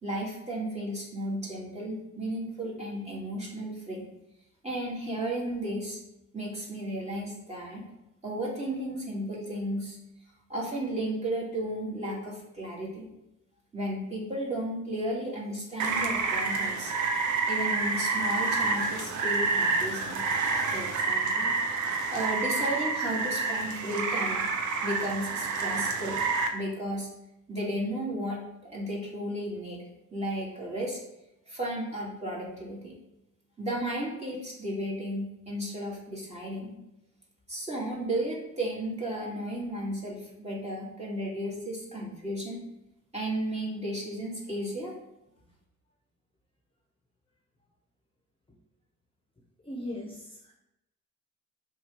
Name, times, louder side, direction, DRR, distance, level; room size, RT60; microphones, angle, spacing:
voice 1, 0.0-4.1 4.6-6.0 6.3-7.8 8.2-10.0 10.5-13.1 13.7-16.9 17.5-20.3 20.7-21.5 21.8-24.5 24.8-26.2 26.5-27.1 27.5-29.8 30.1-31.0 31.5-32.9 33.6-36.8 37.5-42.6 43.1-44.9, right 1 dB, 20° right, -4 dB, 2.6 m, -34 dB
Rain, 15.8-26.5, right 4 dB, 70° right, 0.9 m, -28 dB
voice 2, 49.6-50.5, left 1 dB, 15° left, -1 dB, 1.3 m, -38 dB
5.9 x 3.8 x 5.4 m, 0.89 s
cardioid pair, 90°, 30 cm